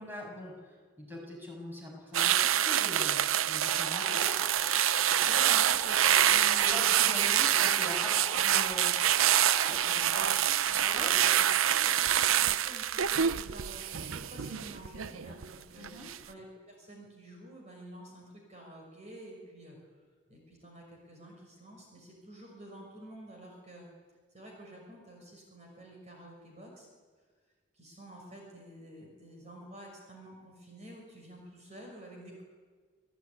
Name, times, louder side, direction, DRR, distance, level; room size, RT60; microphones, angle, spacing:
voice 1, 0.0-4.4 6.6-9.0 10.8-11.1 15.8-16.1, left 1 dB, 10° right, -1 dB, 6.9 m, -42 dB
sound 1, 2.1-15.5 15.8-16.2, right 10 dB, 85° right, 0.7 m, -26 dB
sound 2, 3.6-10.4, left 1 dB, 15° left, 1.8 m, -44 dB
voice 2, 5.2-6.8 9.6-10.8 11.1-19.8 20.3-23.9 24.3-26.9 27.7-32.4, right 1 dB, 35° right, 0 dB, 6.1 m, -49 dB
28.0 x 17.0 x 9.8 m, 1.5 s
head